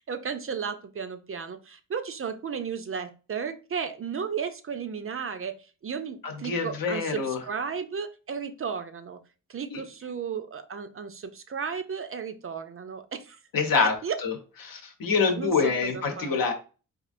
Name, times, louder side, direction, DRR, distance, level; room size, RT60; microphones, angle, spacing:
voice 1, 0.0-5.5 5.8-9.2 9.5-13.4 13.8-14.2 15.2-16.4, right 6 dB, 40° right, 0.4 m, -34 dB
voice 2, 6.2-7.4 9.7-9.8 13.5-13.9 14.2-14.3 14.6-16.5, left 5 dB, 70° left, 0.9 m, -26 dB
4.2 x 2.5 x 2.5 m
cardioid pair, 80°, 35 cm